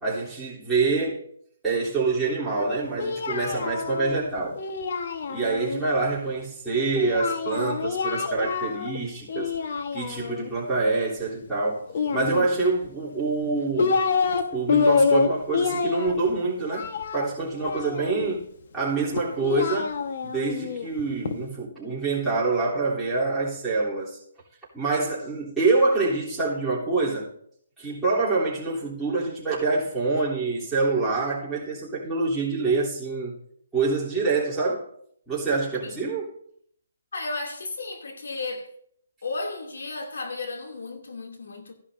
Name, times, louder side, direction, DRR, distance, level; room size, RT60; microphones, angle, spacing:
voice 1, 0.0-1.2 1.6-4.6 5.3-9.6 9.9-14.0 14.5-18.4 18.7-20.0 20.2-24.2 24.7-27.3 27.8-33.4 33.7-34.9 35.3-36.3, right 3 dB, 5° right, 3.3 m, -26 dB
Singing, 2.5-5.8 6.9-9.0 9.3-10.5 11.9-12.9 13.4-14.4 14.7-18.3 19.1-21.4, left 5 dB, 50° left, 1.3 m, -27 dB
voice 2, 37.1-38.7 39.2-41.7, left 3 dB, 80° left, 2.7 m, -34 dB
14.5 x 11.0 x 2.7 m
hypercardioid pair, 160°, 0 cm